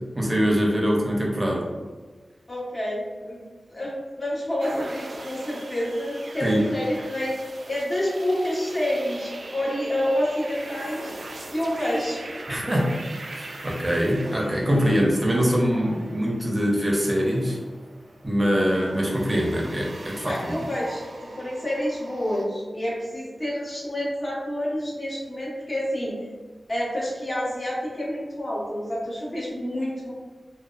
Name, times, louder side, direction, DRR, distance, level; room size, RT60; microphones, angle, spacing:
voice 1, 0.2-1.6 6.4-6.7 12.5-12.9 13.3-17.6 18.2-20.3, equal, 25° right, -2 dB, 0.6 m, -23 dB
voice 2, 2.5-3.4 3.7-11.1 11.5-12.2 20.2-26.2 26.7-30.1, left 1 dB, 40° left, -7 dB, 1.0 m, -28 dB
sound 1, 4.6-22.4, right 2 dB, 80° right, 0.3 m, -41 dB
2.5 x 2.2 x 2.3 m, 1.4 s
wide cardioid pair, 80°, 0 cm